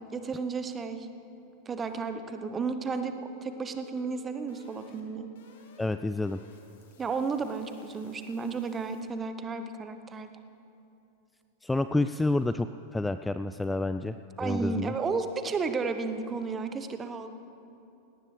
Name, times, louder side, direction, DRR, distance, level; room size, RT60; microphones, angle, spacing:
voice 1, 0.1-1.1 1.7-5.3 7.0-10.3 14.4-17.3, right 4 dB, 20° right, 9 dB, 0.9 m, -33 dB
sound 1, 2.0-9.1, left 1 dB, 55° left, 1.9 m, -54 dB
voice 2, 5.8-6.4 11.6-14.1 14.4-14.9, left 2 dB, 5° left, 11 dB, 0.3 m, -29 dB
19.0 x 17.5 x 3.3 m, 2.7 s
figure-of-eight pair, 90°, 0 cm